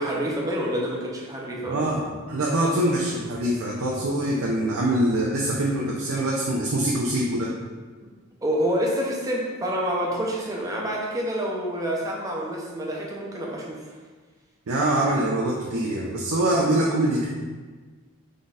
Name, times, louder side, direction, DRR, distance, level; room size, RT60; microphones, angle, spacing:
voice 1, 0.0-1.9 8.4-14.0, equal, 15° right, -3 dB, 0.6 m, -27 dB
voice 2, 1.6-7.5 14.7-17.3, right 1 dB, 80° right, -3 dB, 0.5 m, -24 dB
3.9 x 3.8 x 2.4 m, 1.4 s
head